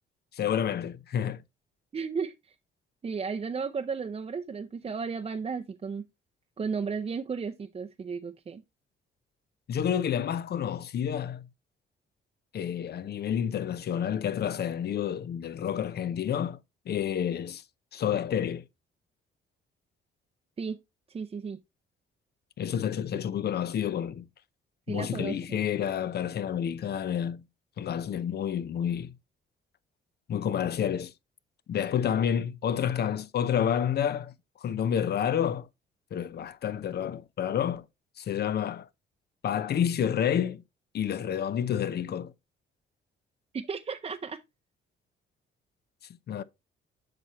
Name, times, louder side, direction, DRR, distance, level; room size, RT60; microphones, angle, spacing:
voice 1, 0.3-1.4 9.7-11.5 12.5-16.6 16.9-17.6 17.9-18.6 22.6-24.2 24.9-27.4 27.8-29.1 30.3-31.1 31.7-34.3 34.6-35.7 36.1-37.9 38.2-38.9 39.4-40.6 40.9-42.3 46.3-46.4, left 9 dB, 55° left, 0.6 m, -29 dB
voice 2, 1.9-2.5 3.0-6.0 6.6-8.6 20.6-20.8 21.1-21.6 24.9-25.6 43.5-44.4, right 5 dB, 30° right, 0.6 m, -34 dB
7.7 x 5.9 x 3.0 m
cardioid pair, 90°, 20 cm